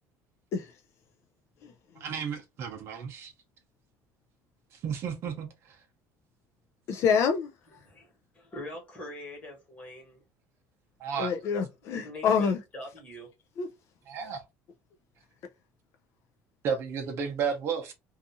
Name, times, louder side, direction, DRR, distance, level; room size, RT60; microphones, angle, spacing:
voice 1, 2.0-3.3 4.7-5.8 11.0-11.3 14.1-14.4 16.6-17.9, right 6 dB, 45° right, 0.6 m, -33 dB
voice 2, 6.9-7.5 11.2-12.6 13.6-13.7, left 6 dB, 50° left, 0.3 m, -26 dB
voice 3, 7.7-10.2 11.9-13.3, left 1 dB, 20° left, 1.2 m, -43 dB
2.6 x 2.4 x 2.5 m
cardioid pair, 160°, 6 cm